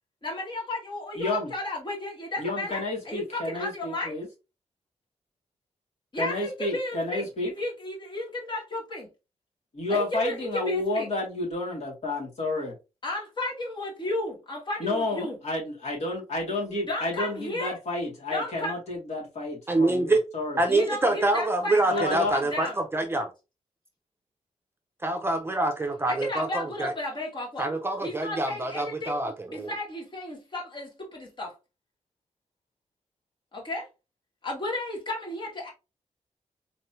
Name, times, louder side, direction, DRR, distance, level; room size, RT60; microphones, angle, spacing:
voice 1, 0.2-4.1 6.1-9.1 9.9-11.1 13.0-15.4 16.9-17.8 18.3-18.8 20.7-22.8 26.1-27.7 28.0-29.2 29.5-31.5 33.5-33.9 34.4-35.7, left 2 dB, 40° left, 2.2 m, -33 dB
voice 2, 1.2-1.5 2.4-4.3 6.1-7.5 9.7-12.7 14.8-20.6 21.9-22.3, left 2 dB, 60° left, 2.4 m, -30 dB
voice 3, 19.7-20.2 20.6-23.3 25.0-26.9 27.6-29.7, right 2 dB, 20° right, 0.6 m, -26 dB
4.0 x 3.2 x 2.8 m
wide cardioid pair, 120°, 12 cm